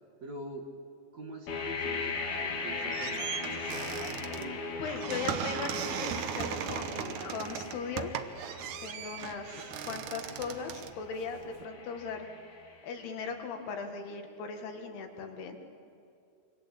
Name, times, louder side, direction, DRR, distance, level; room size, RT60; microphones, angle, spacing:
voice 1, 0.2-0.7 1.1-4.7 5.0-5.3, right 2 dB, 50° right, 2 dB, 2.4 m, -44 dB
sound 1, 1.5-13.3, left 4 dB, 80° left, 5.6 m, -39 dB
sound 2, 2.6-11.7, right 9 dB, 80° right, 1.8 m, -38 dB
voice 2, 4.8-8.1 8.8-12.3 12.8-15.6, left 5 dB, 65° left, 5 dB, 3.7 m, -38 dB
27.5 x 25.0 x 8.4 m, 2.6 s
omnidirectional pair, 5.1 m